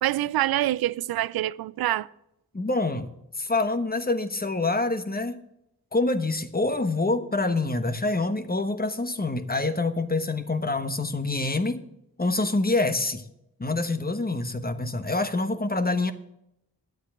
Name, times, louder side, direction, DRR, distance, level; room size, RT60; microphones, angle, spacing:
voice 1, 0.0-2.1, right 14 dB, 65° right, 0.5 m, -26 dB
voice 2, 2.5-3.1 3.4-5.4 5.9-11.8 12.2-13.3 13.6-16.1, left 2 dB, 25° left, 1.2 m, -26 dB
10.5 x 8.3 x 7.1 m
cardioid pair, 45°, 39 cm